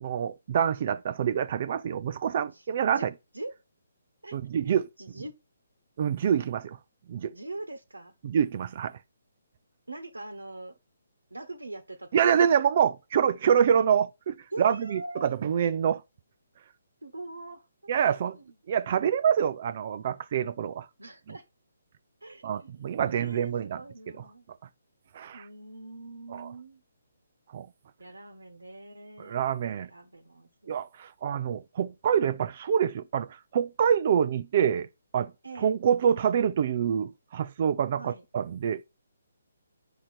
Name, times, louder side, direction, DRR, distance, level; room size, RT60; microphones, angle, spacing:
voice 1, 0.0-3.1 4.3-4.9 6.0-6.8 7.1-7.3 8.2-8.9 12.1-16.0 17.9-18.4 18.7-20.9 22.4-23.8 25.1-25.4 26.3-26.5 27.5-27.7 29.2-29.9 30.7-34.9 35.1-35.3 35.6-38.8, right 8 dB, 40° right, 0.5 m, -26 dB
voice 2, 2.5-3.1 3.3-3.5 4.2-5.4 7.3-8.1 9.9-10.8 11.3-12.4 14.5-15.3 17.0-18.5 21.0-21.4 22.2-24.5 25.3-26.8 28.0-29.3 29.7-30.8 35.4-35.7 38.0-38.2, right 2 dB, 80° right, 1.3 m, -43 dB
8.7 x 5.8 x 4.3 m
figure-of-eight pair, 135°, 0 cm